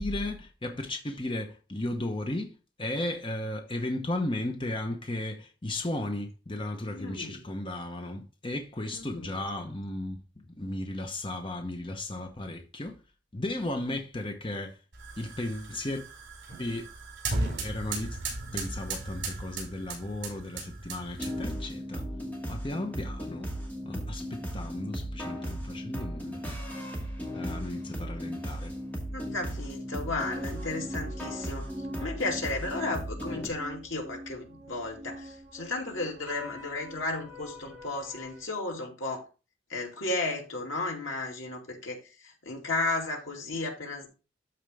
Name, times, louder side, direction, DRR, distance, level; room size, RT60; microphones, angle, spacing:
voice 1, 0.0-10.2 10.6-13.0 13.3-14.8 15.2-16.0 16.6-16.9 17.6-18.2 18.5-22.1 22.5-23.5 23.8-26.4 27.3-28.8, left 1 dB, 25° left, 0.9 m, -35 dB
voice 2, 6.9-7.4 8.9-9.3 29.1-31.6 32.0-39.2 39.7-42.0 42.2-44.1, left 2 dB, 85° left, 2.6 m, -34 dB
sound 1, 14.9-21.6, right 3 dB, 60° right, 5.5 m, -36 dB
sound 2, 21.2-33.5, equal, 10° left, 2.1 m, -36 dB
sound 3, 30.1-38.4, equal, 10° right, 2.9 m, -45 dB
13.0 x 4.4 x 3.5 m
head